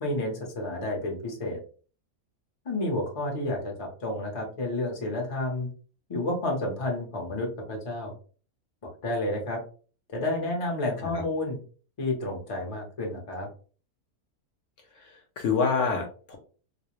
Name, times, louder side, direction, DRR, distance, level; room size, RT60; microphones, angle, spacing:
voice 1, 0.0-1.6 2.6-5.7 6.1-8.1 8.8-9.6 10.1-11.6 12.0-13.5, left 1 dB, 40° left, 0 dB, 0.5 m, -30 dB
voice 2, 15.0-16.4, left 5 dB, 65° left, 2 dB, 0.8 m, -27 dB
2.4 x 2.0 x 2.9 m, 0.39 s
omnidirectional pair, 1.6 m